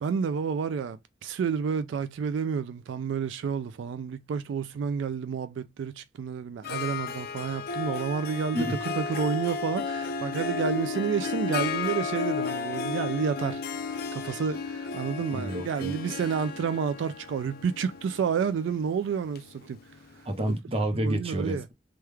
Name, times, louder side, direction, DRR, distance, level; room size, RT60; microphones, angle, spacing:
voice 1, 0.0-13.6 14.1-19.8 20.9-21.6, right 6 dB, 80° right, 0.3 m, -30 dB
Harp, 6.6-20.2, left 5 dB, 55° left, 0.4 m, -34 dB
voice 2, 15.3-15.9 20.3-21.7, right 1 dB, 30° right, 0.7 m, -29 dB
3.0 x 2.3 x 3.3 m
head